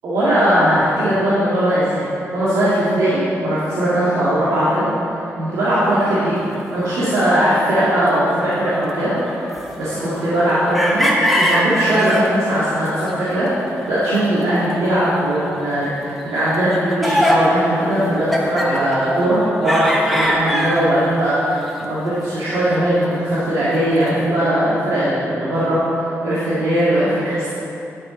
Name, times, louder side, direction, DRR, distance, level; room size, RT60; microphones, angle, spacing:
voice 1, 0.0-9.5 9.8-27.5, right 1 dB, 85° right, -11 dB, 2.1 m, -19 dB
sound 1, 6.5-6.6 7.8-12.3 12.8-14.0 14.3-15.3 15.6-15.7 16.5-21.2 21.6-22.3 22.6-22.7 23.0-23.1 23.8-24.1, equal, ahead, 1.1 m, -22 dB
9.8 x 6.0 x 5.2 m, 2.9 s
cardioid pair, 100°, 5 cm